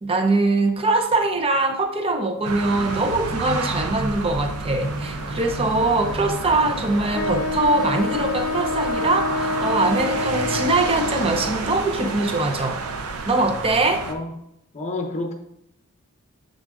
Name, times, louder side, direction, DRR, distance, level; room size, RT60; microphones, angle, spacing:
voice 1, 0.0-12.8 13.2-14.1, right 2 dB, 25° right, 5 dB, 0.6 m, -22 dB
sound 1, 2.4-14.1, right 3 dB, 85° right, 0.7 m, -30 dB
Traffic noise roadway noise, 4.8-9.8, equal, ahead, 1.0 m, -38 dB
Wind instrument woodwind instrument, 7.1-11.6, left 3 dB, 75° left, 0.5 m, -27 dB
voice 2, 14.7-15.3, left 2 dB, 35° left, 3 dB, 0.9 m, -28 dB
7.3 x 3.9 x 3.7 m, 0.79 s
head